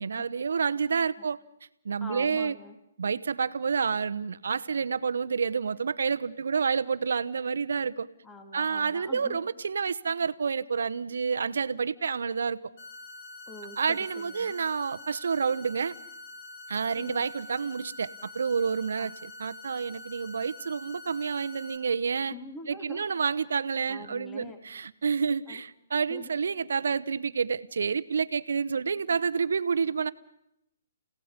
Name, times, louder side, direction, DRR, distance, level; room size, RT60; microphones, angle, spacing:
voice 1, 0.0-1.4 1.8-2.5 3.0-8.1 8.5-12.6 13.8-15.9 16.7-22.3 22.7-30.1, right 5 dB, 75° right, 13 dB, 1.0 m, -29 dB
voice 2, 2.0-2.8 8.2-9.4 13.5-14.5 16.9-17.2 19.0-19.1 22.3-23.0 23.9-24.6 25.5-25.6 26.1-26.3, left 2 dB, 10° left, 4 dB, 3.2 m, -44 dB
sound 1, 12.8-21.8, left 2 dB, 50° left, 7.4 m, -45 dB
30.0 x 17.0 x 5.3 m, 0.78 s
hypercardioid pair, 140°, 0 cm